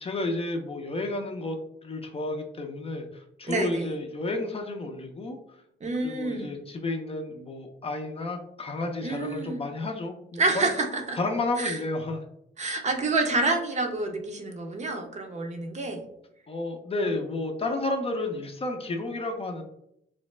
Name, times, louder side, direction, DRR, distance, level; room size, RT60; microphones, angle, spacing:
voice 1, 0.0-5.6 6.0-10.7 11.2-12.2 16.5-19.6, left 2 dB, 30° left, 4 dB, 0.5 m, -31 dB
voice 2, 3.5-3.9 5.8-6.6 9.0-9.6 10.4-11.2 11.6-11.8 12.6-16.1, right 2 dB, 35° right, 4 dB, 0.6 m, -28 dB
3.2 x 2.0 x 3.1 m, 0.75 s
cardioid pair, 90°, 20 cm